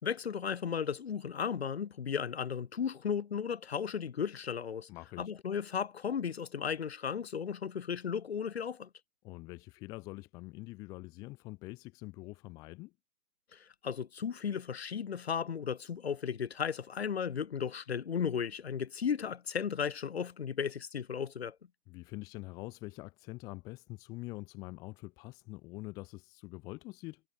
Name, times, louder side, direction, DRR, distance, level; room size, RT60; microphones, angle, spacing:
voice 1, 0.0-4.9 5.2-8.9 13.5-21.6, left 7 dB, 40° left, 2.4 m, -35 dB
voice 2, 4.9-5.3 9.2-12.9 21.9-27.2, left 22 dB, 10° left, 1.4 m, -45 dB
figure-of-eight pair, 155°, 46 cm